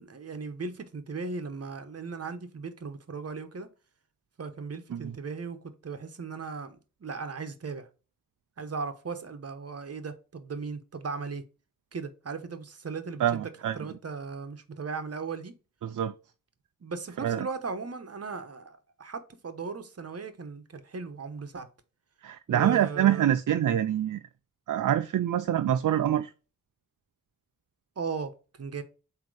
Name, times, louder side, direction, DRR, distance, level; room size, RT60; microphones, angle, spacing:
voice 1, 0.0-3.7 4.4-7.9 8.6-11.4 11.9-13.4 13.7-15.5 16.8-21.7 22.5-23.3 28.0-28.3 28.6-28.8, right 4 dB, 45° right, 1.0 m, -37 dB
voice 2, 13.2-13.8 15.8-16.1 17.2-17.5 22.2-24.2 24.7-26.3, right 11 dB, 65° right, 0.5 m, -25 dB
8.0 x 2.9 x 4.8 m
wide cardioid pair, 130°, 33 cm